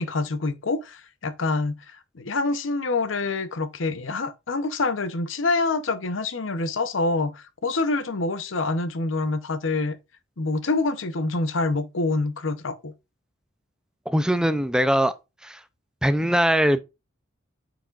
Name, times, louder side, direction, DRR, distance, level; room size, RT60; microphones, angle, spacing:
voice 1, 0.0-1.8 2.1-10.0 10.4-12.9, left 3 dB, 75° left, 0.8 m, -26 dB
voice 2, 14.1-15.1 15.4-15.6 16.0-16.8, equal, 5° right, 0.4 m, -21 dB
9.0 x 4.8 x 2.4 m
head